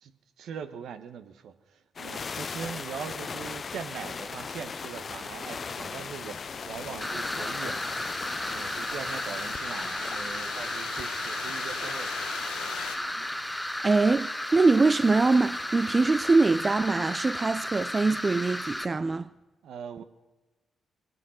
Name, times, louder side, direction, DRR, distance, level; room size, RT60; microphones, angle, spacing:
voice 1, 0.4-6.4 6.6-7.8 8.5-12.1 19.6-20.0, right 7 dB, 70° right, 1.0 m, -41 dB
sound 1, 2.0-16.8, left 5 dB, 50° left, 0.5 m, -40 dB
sound 2, 5.9-13.0, left 8 dB, 85° left, 1.1 m, -41 dB
sound 3, 7.0-18.8, left 1 dB, 10° left, 1.1 m, -34 dB
voice 2, 13.3-19.3, right 3 dB, 35° right, 0.4 m, -23 dB
22.5 x 9.7 x 6.4 m
hypercardioid pair, 45°, 0 cm